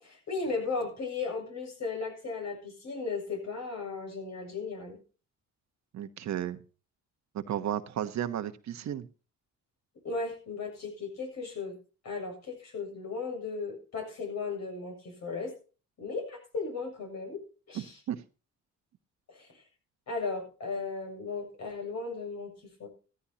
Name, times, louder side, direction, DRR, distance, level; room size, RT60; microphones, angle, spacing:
voice 1, 0.0-5.0 10.0-11.8 12.0-15.5 16.0-17.4 17.7-18.0 19.3-19.6 20.1-22.9, left 4 dB, 60° left, 2 dB, 7.5 m, -36 dB
voice 2, 5.9-6.6 7.3-9.1 17.7-18.2, right 10 dB, 65° right, 10 dB, 1.1 m, -34 dB
15.0 x 14.5 x 2.9 m, 0.35 s
cardioid pair, 90°, 30 cm